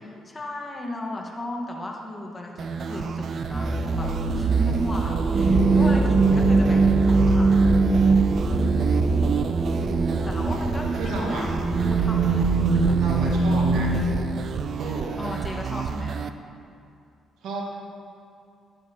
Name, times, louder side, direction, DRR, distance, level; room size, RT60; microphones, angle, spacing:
voice 1, 0.0-7.7 9.8-13.0 15.2-16.2, left 1 dB, 20° left, 0 dB, 1.3 m, -35 dB
sound 1, 2.6-16.3, right 6 dB, 55° right, 0.4 m, -30 dB
sound 2, 3.5-14.1, right 3 dB, 35° right, 0.8 m, -21 dB
voice 2, 9.9-10.6 10.9-11.4 13.0-13.9 14.8-15.2 17.4-17.6, right 3 dB, 85° right, -2 dB, 1.5 m, -33 dB
12.0 x 9.2 x 2.8 m, 2.5 s
cardioid pair, 90°, 0 cm